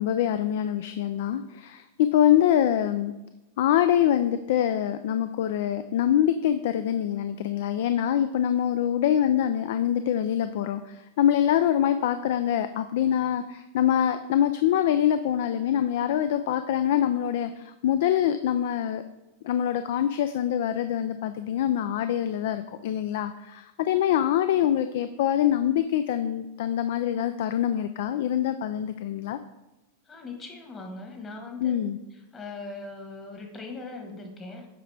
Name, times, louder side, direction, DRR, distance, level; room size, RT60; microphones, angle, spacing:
voice 1, 0.0-3.1 3.6-19.0 19.4-29.4 31.6-32.0, left 10 dB, 65° left, 10 dB, 0.3 m, -24 dB
voice 2, 30.1-31.7 32.1-34.7, left 3 dB, 25° left, 3 dB, 1.3 m, -40 dB
7.8 x 4.8 x 3.3 m, 1.0 s
hypercardioid pair, 110°, 0 cm